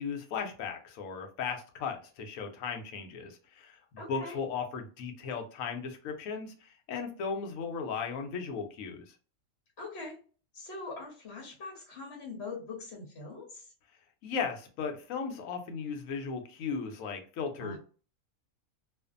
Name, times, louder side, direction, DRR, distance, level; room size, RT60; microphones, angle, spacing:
voice 1, 0.0-3.8 4.1-9.1 14.2-17.8, left 5 dB, 75° left, 4 dB, 1.0 m, -36 dB
voice 2, 4.0-4.4 9.8-10.2 10.5-13.7 17.6-17.8, left 3 dB, 50° left, -1 dB, 1.0 m, -42 dB
2.5 x 2.4 x 2.4 m, 0.38 s
omnidirectional pair, 1.5 m